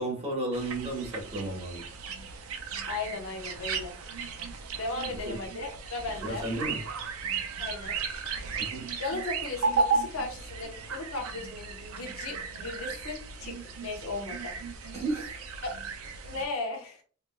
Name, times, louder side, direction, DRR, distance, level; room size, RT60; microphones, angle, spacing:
voice 1, 0.0-1.9 5.3-5.4 6.2-6.8 8.6-8.9 14.9-15.4, right 2 dB, 30° right, 1.0 m, -33 dB
sound 1, 0.5-16.4, right 4 dB, 80° right, 0.4 m, -35 dB
voice 2, 2.9-3.9 4.8-6.4 7.6-8.0 8.9-13.6 13.8-14.5 14.8-14.9 15.6-15.7 16.2-17.0, left 3 dB, 80° left, 0.9 m, -36 dB
3.1 x 3.0 x 2.2 m
head